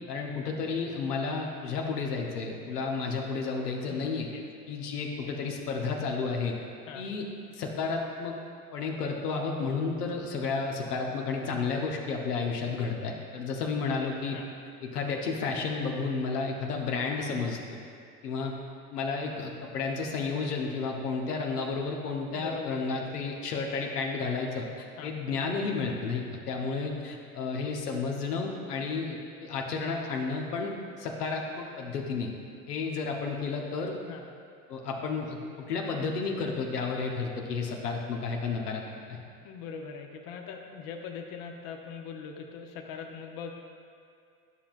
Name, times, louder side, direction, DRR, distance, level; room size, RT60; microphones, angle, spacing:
voice 1, 0.1-4.3 4.7-6.6 6.9-7.3 7.5-8.4 8.7-14.4 14.8-17.8 18.2-18.5 18.9-30.7 31.0-32.3 32.7-34.0 34.7-38.8 39.1-39.2, left 4 dB, 85° left, 0 dB, 0.9 m, -32 dB
voice 2, 3.9-4.4 6.9-7.1 14.3-14.5 22.3-23.0 25.0-25.1 34.0-34.3 39.4-43.5, left 6 dB, 50° left, 3 dB, 0.8 m, -41 dB
11.0 x 5.7 x 2.4 m, 2.4 s
hypercardioid pair, 80°, 45 cm